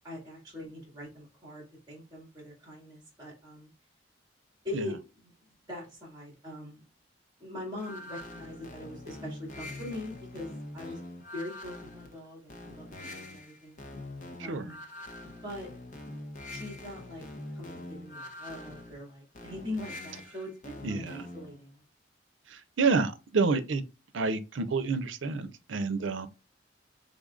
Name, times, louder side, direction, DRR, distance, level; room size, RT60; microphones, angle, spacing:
voice 1, 0.0-3.7 4.6-5.3 5.7-6.8 7.4-11.0 11.3-13.8 14.4-14.8 15.4-15.7 16.5-17.2 17.5-21.8, left 1 dB, 20° right, 2.1 m, -42 dB
sound 1, 7.8-21.6, left 1 dB, 40° left, 0.8 m, -44 dB
voice 2, 14.4-14.7 20.8-21.1 22.8-23.8 24.1-26.3, right 4 dB, 80° right, 0.5 m, -28 dB
5.1 x 3.8 x 2.4 m
head